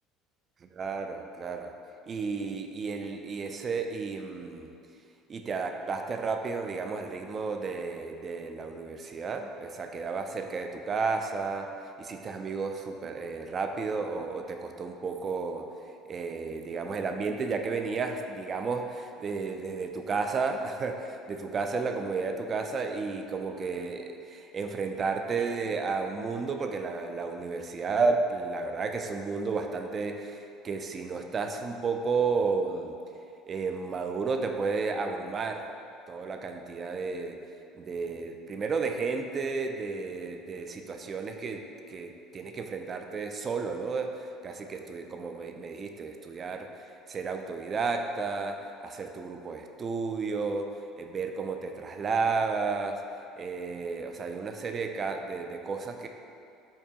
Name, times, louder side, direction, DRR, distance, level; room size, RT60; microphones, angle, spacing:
voice 1, 0.8-1.7 2.1-4.7 5.3-11.7 12.0-15.7 16.1-33.0 33.5-35.7 36.1-37.4 37.7-50.7 51.0-53.0 53.4-56.1, right 4 dB, 35° right, 5 dB, 0.3 m, -32 dB
4.5 x 2.7 x 2.9 m, 2.6 s
supercardioid pair, 100°, 0 cm